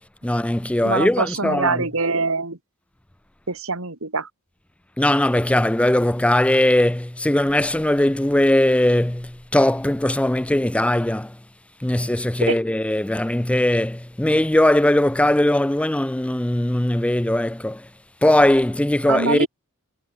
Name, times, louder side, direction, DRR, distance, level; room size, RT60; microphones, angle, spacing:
voice 1, 0.2-1.8 5.0-11.4 11.8-17.9 18.2-19.5, left 1 dB, 5° left, 0.5 m, -19 dB
voice 2, 0.8-2.6 3.5-4.3 12.4-12.6 19.1-19.5, right 3 dB, 65° right, 3.1 m, -24 dB
head